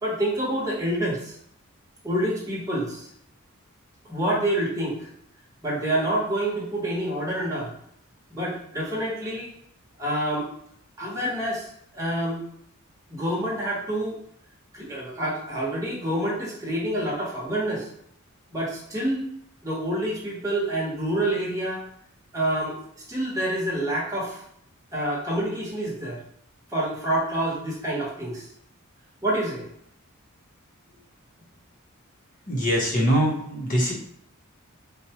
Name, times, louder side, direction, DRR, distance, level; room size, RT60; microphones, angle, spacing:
voice 1, 0.0-1.3 2.0-3.1 4.1-5.0 5.6-7.7 8.3-9.5 10.0-10.5 11.0-12.4 13.1-14.2 14.7-17.9 18.5-19.2 19.6-21.8 22.3-24.4 24.9-26.2 26.7-28.5 29.2-29.6, right 1 dB, 15° right, -5 dB, 1.0 m, -27 dB
voice 2, 32.5-33.9, equal, 40° left, -2 dB, 0.8 m, -23 dB
4.3 x 2.2 x 2.8 m, 0.67 s
head